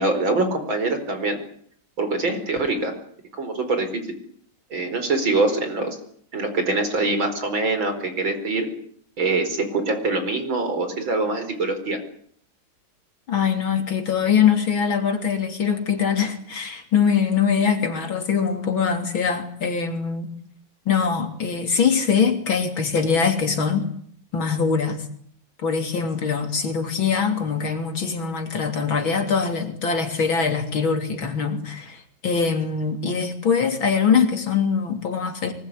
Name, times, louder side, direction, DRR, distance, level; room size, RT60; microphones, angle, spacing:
voice 1, 0.0-1.4 2.0-2.9 3.4-4.0 4.7-6.0 6.3-8.7 9.2-12.0, right 3 dB, 75° right, 5.5 m, -24 dB
voice 2, 13.3-20.3 20.9-23.9 24.3-25.0 25.6-35.5, left 6 dB, 80° left, 4.0 m, -22 dB
24.0 x 21.0 x 9.9 m
omnidirectional pair, 2.2 m